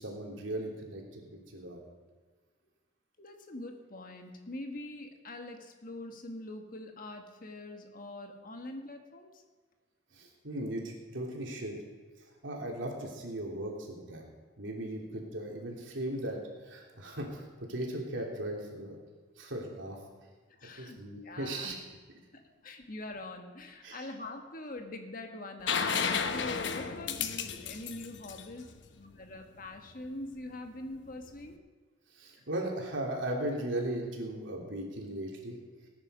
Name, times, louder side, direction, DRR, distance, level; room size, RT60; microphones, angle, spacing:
voice 1, 0.0-1.8 10.1-11.8 12.4-14.2 14.6-16.4 16.6-19.0 19.4-20.0 20.8-21.7 23.8-24.0 32.2-35.6, right 1 dB, 90° right, 0 dB, 3.2 m, -37 dB
voice 2, 3.2-9.4 20.5-21.7 22.3-31.6, left 2 dB, 45° left, 5 dB, 1.6 m, -44 dB
sound 1, 25.7-29.4 31.2-31.3, left 6 dB, 70° left, 1.0 m, -33 dB
18.0 x 9.9 x 5.1 m, 1.4 s
head